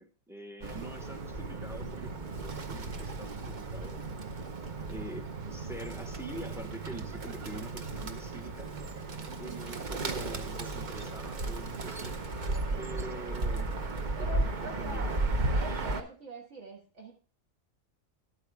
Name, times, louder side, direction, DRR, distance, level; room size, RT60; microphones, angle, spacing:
voice 1, 0.0-4.0 4.9-8.7 9.4-12.2 12.8-13.8 14.2-15.2, equal, 5° right, 7 dB, 0.5 m, -45 dB
Bird, 0.6-16.0, right 2 dB, 40° right, 0.9 m, -35 dB
voice 2, 9.2-9.7 14.2-15.2 15.5-17.1, right 1 dB, 65° right, -1 dB, 1.9 m, -43 dB
11.5 x 8.7 x 3.4 m, 0.39 s
omnidirectional pair, 1.3 m